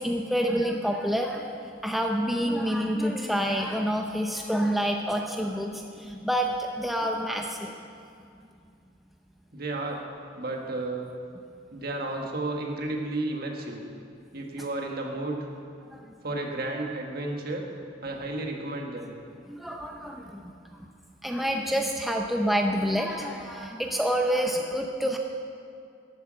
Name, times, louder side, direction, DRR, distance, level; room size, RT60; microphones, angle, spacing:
voice 1, 0.0-1.5 1.8-7.7 15.9-16.1 19.5-20.9 21.2-25.2, equal, ahead, 1 dB, 0.6 m, -28 dB
voice 2, 9.5-10.0 10.4-11.1 11.7-13.8 14.3-15.4 16.2-17.6 18.0-19.1, right 2 dB, 50° right, 1 dB, 1.6 m, -32 dB
12.5 x 8.1 x 7.6 m, 2.4 s
head